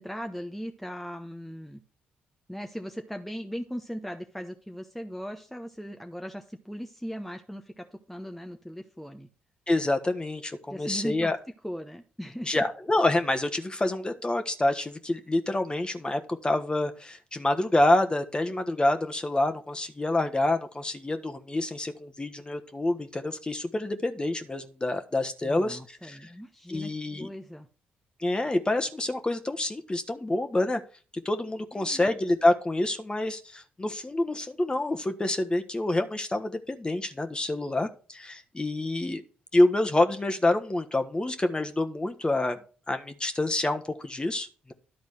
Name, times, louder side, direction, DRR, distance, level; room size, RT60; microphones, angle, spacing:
voice 1, 0.0-1.8 2.5-9.3 10.7-11.3 11.6-12.6 25.4-26.9 27.2-27.7 31.7-32.1, equal, 5° left, 5 dB, 0.9 m, -38 dB
voice 2, 9.7-11.4 12.5-26.3 26.7-27.3 28.2-30.8 31.2-39.2 39.5-42.6 42.9-44.7, left 2 dB, 20° left, 7 dB, 1.3 m, -27 dB
11.0 x 4.0 x 6.4 m, 0.39 s
hypercardioid pair, 50°, 4 cm